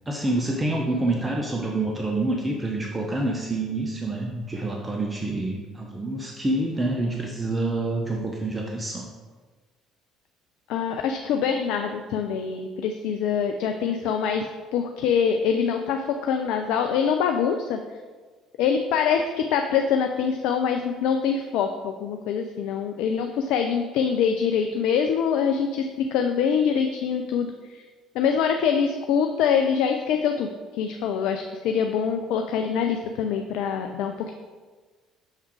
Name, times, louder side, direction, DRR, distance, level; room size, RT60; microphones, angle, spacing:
voice 1, 0.1-9.1, right 2 dB, 20° right, 0 dB, 0.8 m, -27 dB
voice 2, 10.7-17.8 18.6-27.8 28.1-34.3, left 7 dB, 70° left, 5 dB, 0.4 m, -24 dB
6.5 x 3.6 x 4.5 m, 1.4 s
hypercardioid pair, 55°, 0 cm